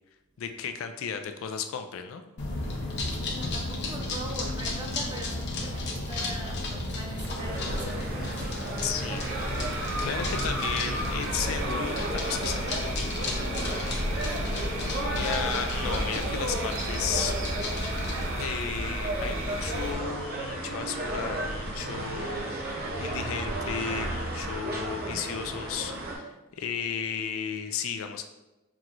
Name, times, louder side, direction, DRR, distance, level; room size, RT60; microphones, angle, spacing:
voice 1, 0.4-2.2 8.8-13.3 15.1-17.3 18.4-28.3, left 7 dB, 75° left, 7 dB, 0.3 m, -34 dB
sound 1, 2.4-18.4, left 2 dB, 55° left, 0.8 m, -34 dB
voice 2, 3.2-8.6 14.1-14.7, right 1 dB, 20° right, 1 dB, 0.6 m, -42 dB
sound 2, 7.4-26.1, right 1 dB, 50° right, 0.9 m, -34 dB
sound 3, 9.2-19.9, right 1 dB, 75° right, 0.7 m, -34 dB
5.9 x 2.9 x 2.5 m, 1.0 s
head